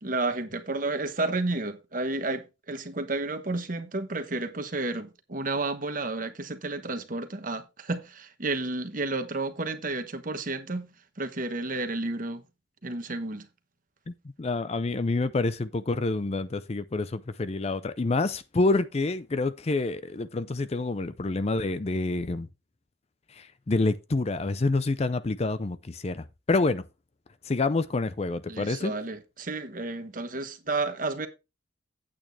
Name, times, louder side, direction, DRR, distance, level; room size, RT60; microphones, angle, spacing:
voice 1, 0.0-12.4 12.8-13.5 28.5-31.3, right 2 dB, 45° right, 1.2 m, -31 dB
voice 2, 14.1-22.5 23.3-26.8 27.4-28.9, left 3 dB, 35° left, 0.5 m, -27 dB
8.8 x 8.7 x 3.3 m
head